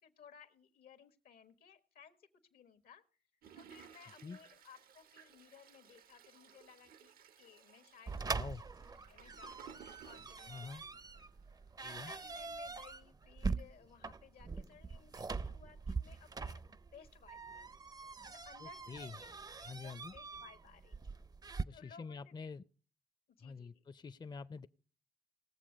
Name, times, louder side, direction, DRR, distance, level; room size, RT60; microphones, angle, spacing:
voice 1, 0.0-3.0 3.5-8.5 9.0-9.6 9.8-10.9 11.8-17.7 18.2-21.2 21.7-22.5 23.4-23.8, left 7 dB, 80° left, 1.3 m, -60 dB
Toilet flush, 3.4-11.5 11.9-12.0 12.2-12.3, right 8 dB, 80° right, 0.8 m, -59 dB
sound 1, 8.1-21.6, right 4 dB, 25° right, 0.5 m, -43 dB
voice 2, 8.2-8.6 10.5-10.8 11.8-12.1 18.6-19.2 19.6-20.1 21.7-22.6 23.4-24.7, left 5 dB, 30° left, 0.5 m, -47 dB
18.5 x 7.3 x 5.1 m
cardioid pair, 70°, 15 cm